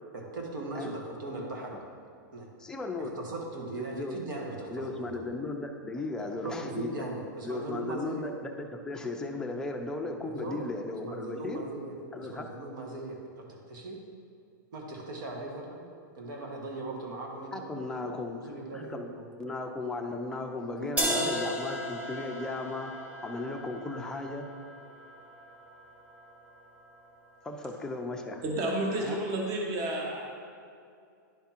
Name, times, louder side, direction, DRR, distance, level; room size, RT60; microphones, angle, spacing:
voice 1, 0.1-1.8 2.3-2.5 3.0-5.2 6.4-8.3 10.2-10.7 11.0-14.0 14.7-15.8 16.1-17.7 18.4-19.2 20.8-21.3, right 2 dB, 75° right, 0 dB, 1.5 m, -39 dB
voice 2, 2.6-3.1 3.7-4.2 4.7-6.9 7.4-11.6 12.1-12.5 17.5-18.4 18.7-19.1 19.4-24.4 27.4-28.4 29.0-29.2, left 2 dB, 5° left, 2 dB, 0.5 m, -36 dB
sound 1, 21.0-26.9, equal, 10° right, 0.8 m, -36 dB
voice 3, 28.4-30.2, right 1 dB, 30° right, -1 dB, 1.1 m, -30 dB
10.5 x 3.5 x 4.4 m, 2.3 s
hypercardioid pair, 145°, 11 cm